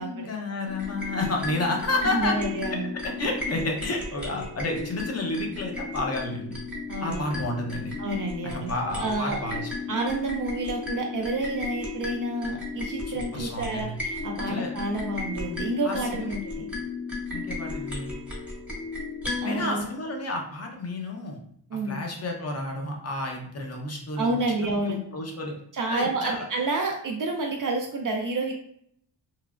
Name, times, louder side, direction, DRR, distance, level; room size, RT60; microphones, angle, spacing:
voice 1, 0.0-2.4 2.7-6.6 7.0-7.9 8.5-9.7 13.1-14.0 14.5-14.7 15.8-16.4 17.3-18.1 19.4-21.4 21.8-24.3 24.8-25.6 25.9-26.4, left 2 dB, 35° left, 1 dB, 0.7 m, -31 dB
sound 1, 0.7-19.6, left 3 dB, 5° right, 0.8 m, -34 dB
voice 2, 2.0-2.9 6.9-7.4 8.0-8.7 9.0-9.4 9.9-16.7 19.4-19.9 21.7-22.0 24.2-25.0 25.7-28.5, right 2 dB, 45° right, 1 dB, 0.5 m, -29 dB
3.1 x 2.0 x 2.4 m, 0.66 s
cardioid pair, 85°, 46 cm